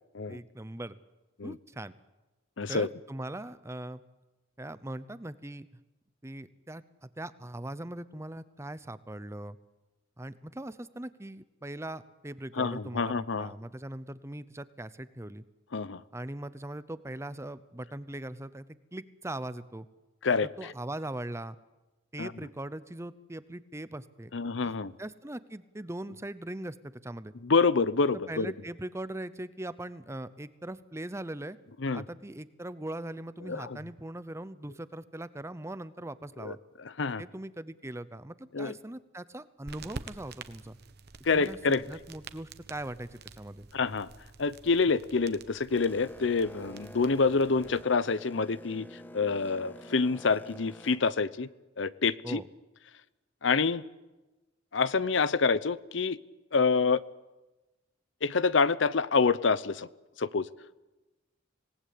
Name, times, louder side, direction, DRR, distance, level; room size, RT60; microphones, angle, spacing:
voice 1, 0.3-1.0 1.4-1.9 2.7-4.0 4.6-5.7 6.2-9.6 10.2-15.4 16.1-18.6 18.9-19.9 20.4-21.6 22.1-24.3 24.6-27.3 28.3-31.6 31.9-36.6 37.2-40.8 41.3-43.7 52.2-52.4, right 1 dB, 15° right, 15 dB, 0.8 m, -40 dB
voice 2, 2.6-2.9 12.6-13.5 15.7-16.0 20.2-20.7 22.2-22.3 24.3-24.9 27.4-28.5 31.8-32.0 33.5-33.8 36.4-36.5 37.0-37.2 38.5-38.7 41.3-41.9 43.7-44.1 44.4-48.9 49.1-51.5 51.8-52.4 53.4-53.8 54.7-56.2 56.5-57.0 58.2-59.9 60.2-60.5, left 4 dB, 65° left, 18 dB, 0.7 m, -27 dB
sound 1, 39.6-47.8, right 4 dB, 55° right, 1.2 m, -48 dB
Boat Water vehicle, 45.7-51.0, equal, 10° left, 1.4 m, -48 dB
26.0 x 19.0 x 8.5 m, 1.1 s
head